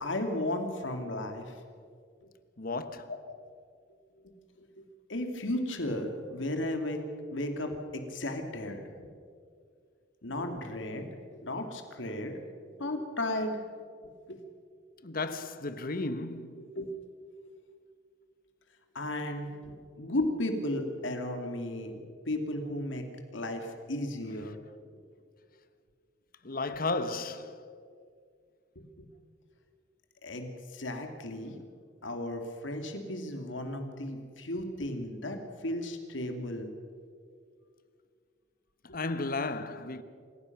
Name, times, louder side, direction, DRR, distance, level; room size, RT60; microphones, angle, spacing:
voice 1, 0.0-1.5 2.2-2.3 3.1-3.2 4.2-4.3 4.6-4.8 5.1-9.1 10.2-13.6 14.3-14.4 16.8-16.9 18.9-23.1 23.3-24.6 28.8-29.1 30.2-31.6 32.0-36.7, left 1 dB, 75° left, 2.5 m, -35 dB
voice 2, 2.6-3.1 15.0-16.6 26.4-27.6 38.9-40.0, left 3 dB, 50° left, 1.2 m, -34 dB
27.5 x 16.0 x 6.0 m
head